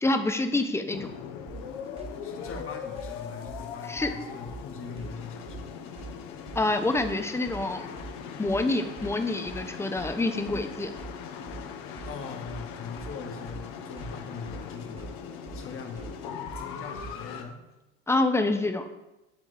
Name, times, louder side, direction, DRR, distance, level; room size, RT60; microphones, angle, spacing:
voice 1, 0.0-1.1 3.9-4.1 6.6-7.9 8.4-10.9 18.1-18.8, left 2 dB, 5° left, 8 dB, 0.5 m, -27 dB
sound 1, 0.9-17.4, left 7 dB, 65° left, 0.8 m, -40 dB
sound 2, 1.5-17.4, right 4 dB, 15° right, 1.0 m, -44 dB
voice 2, 2.2-5.7 12.0-15.2 15.5-16.2 16.5-17.6, left 5 dB, 35° left, 3 dB, 1.3 m, -41 dB
10.0 x 3.6 x 3.2 m, 0.97 s
hypercardioid pair, 80°, 39 cm